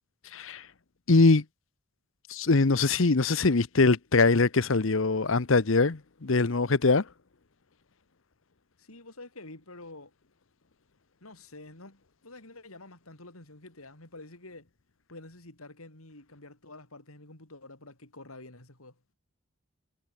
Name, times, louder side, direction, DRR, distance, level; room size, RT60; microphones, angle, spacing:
voice 1, 0.3-0.6 1.1-1.4 2.3-7.0, left 3 dB, 65° left, 0.9 m, -22 dB
voice 2, 8.8-10.1 11.2-14.7 15.1-19.0, left 2 dB, 90° left, 5.3 m, -48 dB
head